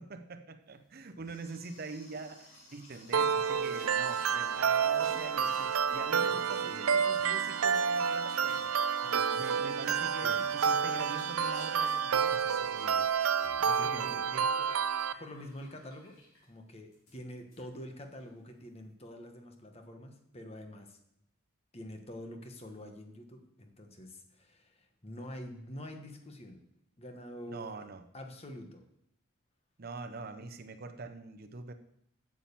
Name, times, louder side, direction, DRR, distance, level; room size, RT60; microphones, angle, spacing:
voice 1, 0.0-8.7 9.3-13.1 13.6-14.5 27.5-28.0 29.8-31.7, right 3 dB, 45° right, 8 dB, 0.6 m, -44 dB
sound 1, 0.8-16.5 16.9-17.2 17.5-17.6 17.9-18.2, left 2 dB, 80° left, 4.5 m, -54 dB
sound 2, 3.1-15.1, right 7 dB, 85° right, 0.5 m, -29 dB
voice 2, 6.3-6.8 9.0-9.5 10.2-10.4 13.7-14.7 15.2-16.2 16.5-21.0 21.7-26.6 27.0-27.7 28.1-28.8, left 1 dB, 30° left, 5 dB, 1.3 m, -46 dB
8.8 x 7.5 x 7.0 m, 0.76 s
head